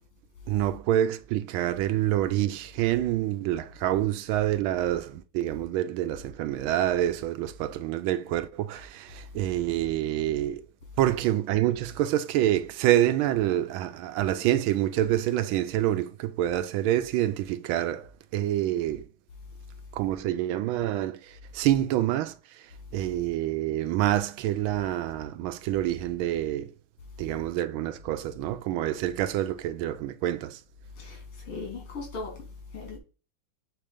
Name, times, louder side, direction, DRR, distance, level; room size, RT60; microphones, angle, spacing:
voice 1, 0.5-10.6 11.0-19.1 19.9-26.7 27.2-30.6, right 13 dB, 80° right, 1.4 m, -27 dB
voice 2, 31.0-33.0, left 3 dB, 90° left, 3.5 m, -38 dB
7.4 x 3.2 x 5.0 m
omnidirectional pair, 2.3 m